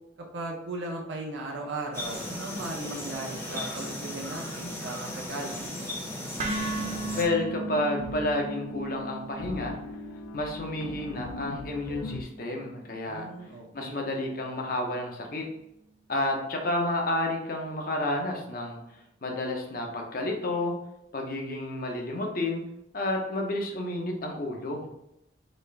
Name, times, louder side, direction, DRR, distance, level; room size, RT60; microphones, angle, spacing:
voice 1, 0.3-5.7 13.1-14.0, right 2 dB, 75° right, -1 dB, 0.7 m, -37 dB
sound 1, 1.9-7.2, left 1 dB, 15° left, 0.7 m, -36 dB
sound 2, 6.4-14.5, right 3 dB, 35° right, 0.5 m, -38 dB
sound 3, 6.6-12.2, left 4 dB, 85° left, 0.3 m, -40 dB
voice 2, 7.2-9.8 10.3-13.2 13.7-15.4 16.1-18.8 19.2-20.7 21.1-22.6 22.9-24.9, left 1 dB, 50° left, 1 dB, 0.7 m, -30 dB
4.1 x 2.4 x 3.3 m, 0.82 s
head